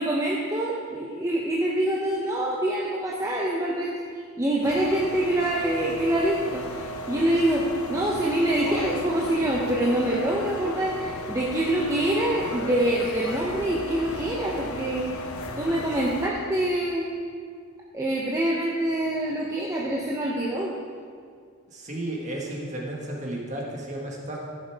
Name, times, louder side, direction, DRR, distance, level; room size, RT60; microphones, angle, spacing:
voice 1, 0.0-3.9 4.4-15.1 15.6-17.1 17.9-20.7, right 1 dB, 15° right, -4 dB, 0.8 m, -25 dB
sound 1, 4.6-16.3, left 1 dB, 80° left, 0.9 m, -35 dB
voice 2, 21.7-24.4, right 1 dB, 30° right, -2 dB, 1.7 m, -33 dB
14.5 x 6.7 x 4.7 m, 2.1 s
head